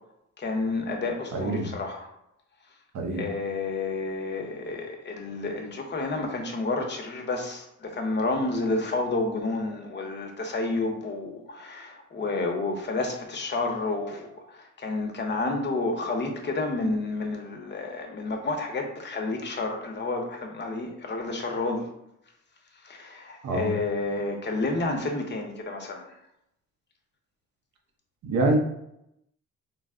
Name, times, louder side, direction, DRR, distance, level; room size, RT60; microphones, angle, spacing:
voice 1, 0.4-2.1 3.1-21.9 22.8-26.2, left 3 dB, 35° left, 2 dB, 0.9 m, -30 dB
voice 2, 1.3-1.7 2.9-3.3 23.4-23.7 28.2-28.6, right 2 dB, 65° right, 3 dB, 0.9 m, -25 dB
3.9 x 2.2 x 3.7 m, 0.80 s
cardioid pair, 90°, 30 cm